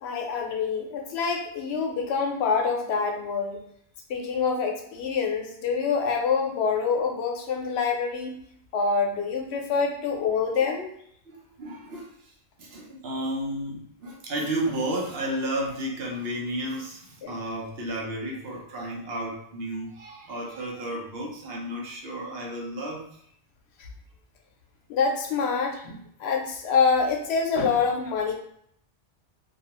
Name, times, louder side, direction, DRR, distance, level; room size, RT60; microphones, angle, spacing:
voice 1, 0.0-3.6 4.1-8.3 8.7-10.9 17.2-17.3 24.9-28.3, left 5 dB, 90° left, 3 dB, 0.8 m, -26 dB
voice 2, 11.3-12.3 12.6-23.2, right 1 dB, 70° right, -2 dB, 0.9 m, -32 dB
2.4 x 2.3 x 2.9 m, 0.68 s
omnidirectional pair, 1.1 m